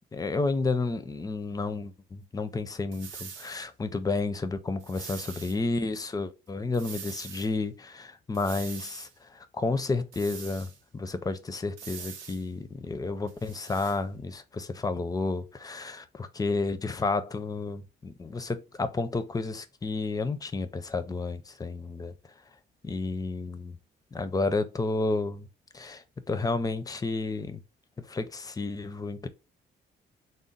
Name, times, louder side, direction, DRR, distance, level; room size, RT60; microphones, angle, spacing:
voice 1, 0.1-22.1 22.8-23.8 24.1-25.5 25.7-27.6 28.0-29.3, left 3 dB, 20° left, 0.5 m, -31 dB
sound 1, 2.9-3.6 4.8-5.6 6.7-7.5 8.3-9.1 10.1-10.8 11.8-12.4 13.3-14.0, right 7 dB, 90° right, 0.6 m, -43 dB
3.8 x 2.0 x 3.8 m
cardioid pair, 90°, 20 cm